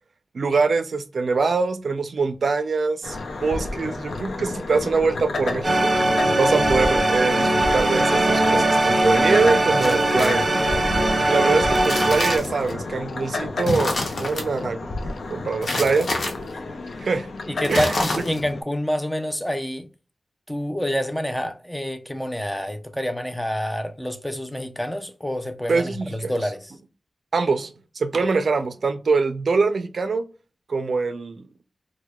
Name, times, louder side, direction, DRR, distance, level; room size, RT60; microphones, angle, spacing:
voice 1, 0.3-5.9 6.4-10.5 11.3-16.1 17.0-17.3 17.7-17.9 25.7-26.3 27.3-30.2 30.7-31.5, right 4 dB, 70° right, 0.4 m, -23 dB
sound 1, 3.0-18.6, left 3 dB, 85° left, 0.5 m, -31 dB
sound 2, 5.6-12.4, right 1 dB, 35° right, 0.8 m, -20 dB
sound 3, 9.8-10.7 11.6-12.7 13.6-14.4 15.6-16.3 17.6-18.5, left 2 dB, 70° left, 1.0 m, -28 dB
voice 2, 17.5-19.9 20.5-26.7, equal, 5° left, 0.4 m, -27 dB
4.5 x 2.1 x 2.3 m
wide cardioid pair, 125°, 0 cm